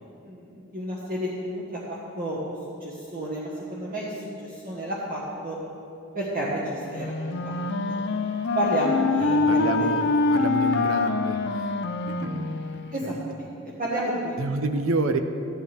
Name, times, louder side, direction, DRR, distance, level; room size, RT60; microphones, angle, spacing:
voice 1, 0.2-2.5 2.8-5.6 6.1-7.5 7.9-8.2 8.5-10.1 12.9-13.5 13.8-14.6, right 1 dB, 45° right, -6 dB, 1.5 m, -31 dB
Wind instrument woodwind instrument, 6.9-13.0, left 3 dB, 55° left, 0.6 m, -25 dB
voice 2, 9.2-10.0 10.3-11.7 12.1-12.6 13.0-13.2 14.4-15.2, right 3 dB, 70° right, 8 dB, 0.7 m, -28 dB
14.0 x 11.0 x 3.6 m, 2.6 s
head